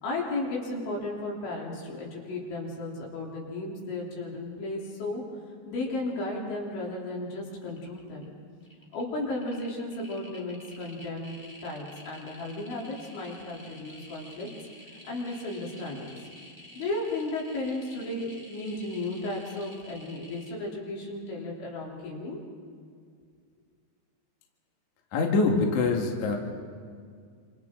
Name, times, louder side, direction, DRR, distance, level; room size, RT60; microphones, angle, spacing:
voice 1, 0.0-5.2 5.7-8.3 8.9-11.3 11.6-14.5 14.8-16.1 16.8-22.4, left 2 dB, 80° left, -3 dB, 5.8 m, -34 dB
sound 1, 7.1-7.4 7.6-8.2 8.6-20.5, left 1 dB, 10° left, 1.7 m, -50 dB
voice 2, 25.1-26.4, left 3 dB, 50° left, 1 dB, 2.5 m, -24 dB
27.5 x 27.0 x 3.8 m, 2.1 s
omnidirectional pair, 5.3 m